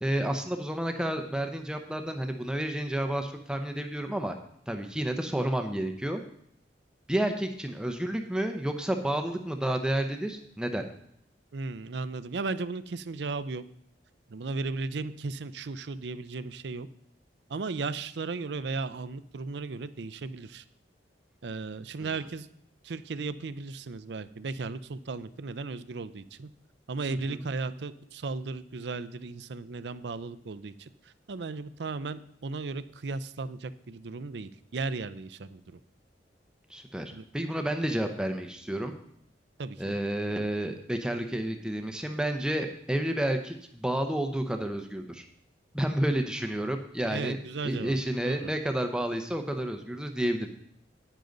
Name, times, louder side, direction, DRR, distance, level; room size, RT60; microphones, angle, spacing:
voice 1, 0.0-4.4 4.7-6.2 7.1-10.8 27.3-27.5 36.7-38.9 39.8-45.3 45.7-47.4 47.6-50.5, right 1 dB, 5° right, 5 dB, 0.6 m, -30 dB
voice 2, 11.5-13.6 14.3-16.9 17.5-20.6 21.4-22.5 22.8-26.5 26.9-35.8 37.1-37.2 39.6-40.0 47.1-48.0 48.2-48.5, right 3 dB, 70° right, 14 dB, 0.5 m, -36 dB
10.5 x 9.2 x 3.9 m, 0.69 s
head